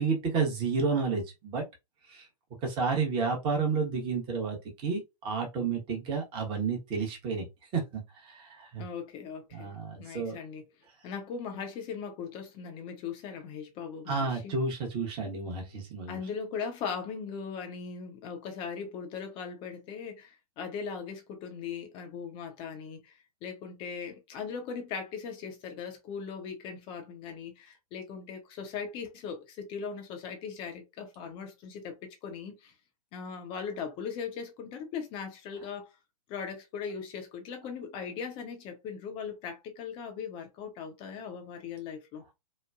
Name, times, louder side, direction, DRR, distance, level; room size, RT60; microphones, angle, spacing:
voice 1, 0.0-1.6 2.1-2.2 2.6-4.6 4.8-7.5 7.7-8.8 9.5-10.4 14.1-16.2, right 4 dB, 25° right, 1.0 m, -31 dB
voice 2, 8.8-9.7 10.0-10.6 11.0-14.6 16.1-32.7 33.1-35.9 36.3-42.2, left 6 dB, 25° left, 0.7 m, -39 dB
3.0 x 2.1 x 2.3 m
figure-of-eight pair, 115°, 20 cm